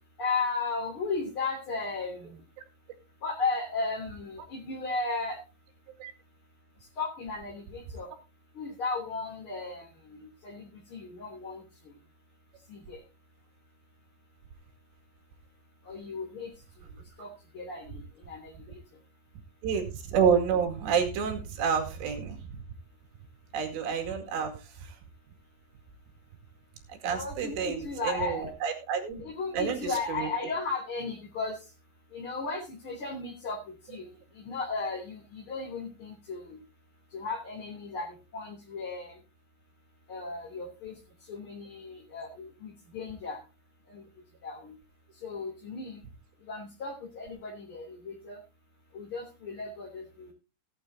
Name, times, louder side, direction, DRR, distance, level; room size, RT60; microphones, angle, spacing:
voice 1, 0.2-2.4 3.2-5.4 7.0-8.1 8.5-11.6 12.7-13.0 15.8-16.5 17.2-17.3 17.5-18.0 18.3-18.5 27.1-28.5 29.2-31.6 32.1-33.6 33.9-34.1 34.4-36.6 37.1-38.1 38.3-39.1 40.1-40.9 41.3-43.4 43.9-44.0 44.4-44.7 45.2-46.0 46.5-48.4 48.9-50.3, left 4 dB, 30° left, -2 dB, 3.4 m, -35 dB
voice 2, 19.6-22.6 23.5-24.9 27.0-29.2 29.5-30.3, right 7 dB, 75° right, 3 dB, 4.3 m, -29 dB
18.0 x 9.0 x 2.8 m, 0.30 s
omnidirectional pair, 5.2 m